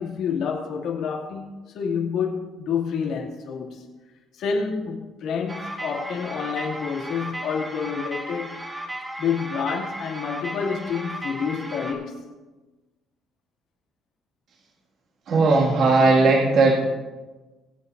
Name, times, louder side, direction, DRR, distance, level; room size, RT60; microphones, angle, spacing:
voice 1, 0.0-1.5 1.7-3.9 4.3-8.6 9.2-12.3, left 6 dB, 70° left, 2.5 m, -28 dB
sound 1, 5.5-11.9, right 1 dB, 10° right, 1.5 m, -35 dB
voice 2, 15.3-16.9, right 3 dB, 55° right, 2.1 m, -17 dB
24.0 x 8.2 x 2.7 m
cardioid pair, 140°, 0 cm